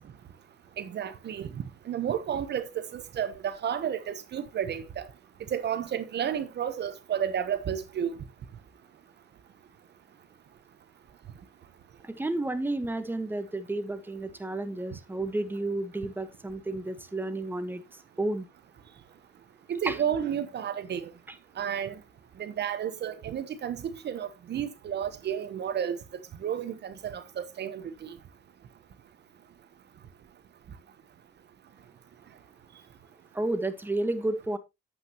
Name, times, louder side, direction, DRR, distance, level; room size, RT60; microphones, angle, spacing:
voice 1, 0.8-5.1 5.5-8.2 19.7-21.1 21.6-22.0 22.4-26.0 26.4-28.2, right 9 dB, 60° right, 1.0 m, -32 dB
voice 2, 12.0-17.8 18.2-18.5 19.9-20.0 33.3-34.6, right 2 dB, 10° right, 1.2 m, -31 dB
9.0 x 8.0 x 2.9 m
cardioid pair, 90°, 20 cm